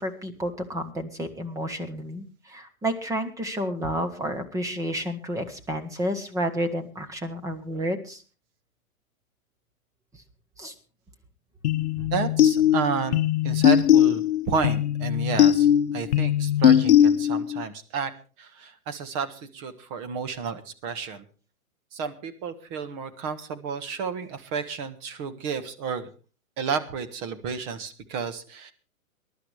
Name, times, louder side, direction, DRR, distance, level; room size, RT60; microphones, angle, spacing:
voice 1, 0.0-8.2 10.1-10.2 10.6-10.7, equal, 10° right, 7 dB, 1.3 m, -30 dB
sound 1, 11.6-17.6, left 10 dB, 50° left, 0.9 m, -20 dB
voice 2, 11.9-15.7 15.9-18.1 18.4-21.2 21.9-26.1 26.6-28.7, right 5 dB, 30° right, 10 dB, 1.5 m, -31 dB
22.5 x 12.0 x 3.3 m, 0.36 s
hypercardioid pair, 135°, 42 cm